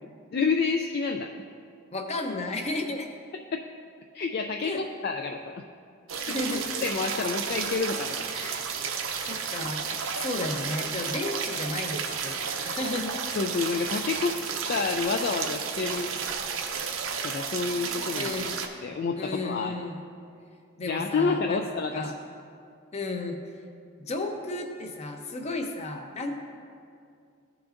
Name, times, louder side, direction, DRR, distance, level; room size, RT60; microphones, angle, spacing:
voice 1, 0.3-1.4 3.5-3.6 4.1-5.6 6.2-6.3 6.8-8.6 13.4-14.4 14.7-16.1 17.2-18.3 18.8-19.8 20.9-22.1, left 4 dB, 50° left, 4 dB, 0.3 m, -29 dB
voice 2, 1.9-3.1 4.6-4.8 6.3-6.7 8.5-13.2 18.1-18.6 19.2-20.0 20.8-21.7 21.9-22.1 22.9-23.4 24.0-26.3, left 2 dB, 30° left, 4 dB, 0.7 m, -33 dB
sound 1, 6.1-18.7, right 6 dB, 80° right, 0.7 m, -32 dB
15.0 x 6.0 x 2.5 m, 2.3 s
head